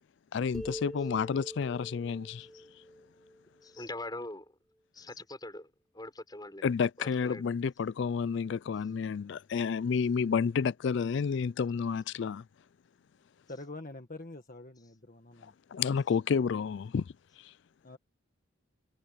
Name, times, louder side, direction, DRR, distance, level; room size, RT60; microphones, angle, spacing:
voice 1, 0.3-2.5 6.6-12.4 15.4-17.5, left 6 dB, 55° left, 0.3 m, -30 dB
sound 1, 0.5-4.1, equal, ahead, 4.3 m, -45 dB
voice 2, 3.6-4.5 4.9-6.6 7.0-7.5, left 2 dB, 20° left, 6.4 m, -43 dB
voice 3, 13.5-15.5 17.8-18.0, left 2 dB, 40° left, 1.6 m, -45 dB
head